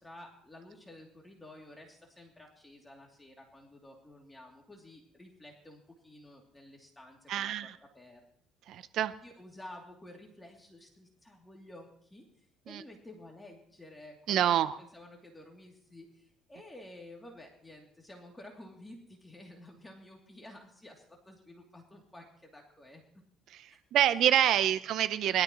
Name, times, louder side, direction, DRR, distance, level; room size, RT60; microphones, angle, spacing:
voice 1, 0.0-7.7 7.9-8.2 9.2-23.0 23.7-23.8 24.5-24.8, left 1 dB, 10° left, 0 dB, 2.8 m, -52 dB
voice 2, 7.3-7.7 8.7-9.1 12.7-12.8 14.3-14.8 23.9-25.4, right 11 dB, 65° right, 13 dB, 0.7 m, -26 dB
22.0 x 12.5 x 3.1 m, 0.63 s
cardioid pair, 95°, 0 cm